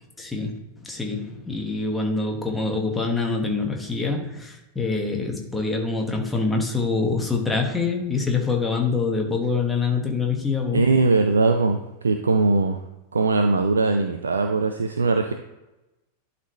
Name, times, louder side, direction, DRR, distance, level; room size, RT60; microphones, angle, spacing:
voice 1, 0.2-0.5 0.8-10.9, left 4 dB, 10° left, 1 dB, 1.5 m, -25 dB
voice 2, 10.7-11.8 12.0-12.8 13.1-15.3, right 3 dB, 70° right, 6 dB, 0.5 m, -20 dB
11.0 x 4.1 x 3.2 m, 1.0 s
figure-of-eight pair, 90°, 0 cm